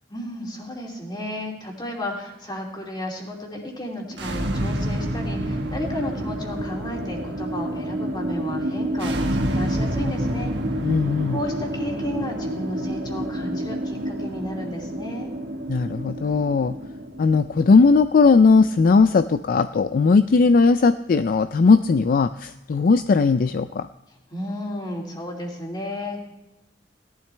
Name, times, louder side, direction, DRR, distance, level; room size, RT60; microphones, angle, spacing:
voice 1, 0.1-10.5 11.3-15.3 24.3-26.2, left 1 dB, 25° left, -1 dB, 3.0 m, -33 dB
sound 1, 4.1-19.1, right 1 dB, 85° right, 1.5 m, -29 dB
voice 2, 10.8-11.4 15.7-16.8 17.2-23.9, left 4 dB, 55° left, 11 dB, 0.4 m, -18 dB
17.5 x 12.0 x 3.3 m, 0.90 s
head